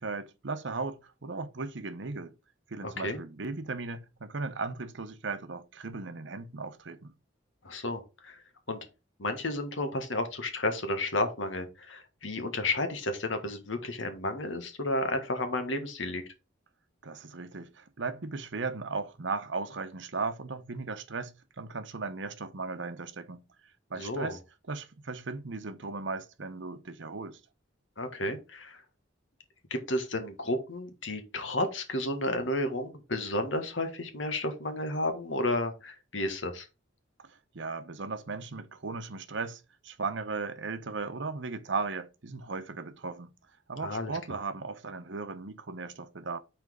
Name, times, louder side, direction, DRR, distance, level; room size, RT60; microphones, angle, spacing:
voice 1, 0.0-2.3 2.7-7.1 17.0-23.4 23.9-24.4 24.7-27.4 37.2-43.3 43.7-46.4, right 4 dB, 70° right, 0.9 m, -37 dB
voice 2, 2.8-3.2 7.6-8.8 9.2-16.2 23.9-24.4 28.0-28.8 29.7-36.7 43.8-44.1, left 1 dB, 75° left, 1.7 m, -32 dB
6.1 x 4.4 x 5.2 m
head